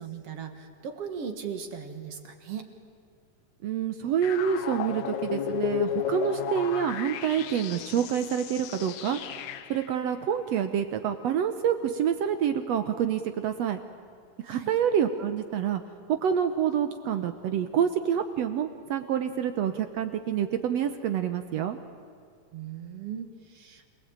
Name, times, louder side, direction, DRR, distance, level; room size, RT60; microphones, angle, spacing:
voice 1, 0.0-2.7 14.4-14.7 22.5-23.9, right 7 dB, 55° right, 6 dB, 2.2 m, -38 dB
voice 2, 3.6-9.2 9.7-13.8 14.5-15.8 16.2-21.8, right 8 dB, 70° right, 9 dB, 1.6 m, -27 dB
sound 1, 4.2-9.9, left 10 dB, 70° left, 2.1 m, -33 dB
27.0 x 19.5 x 8.8 m, 2.3 s
omnidirectional pair, 3.9 m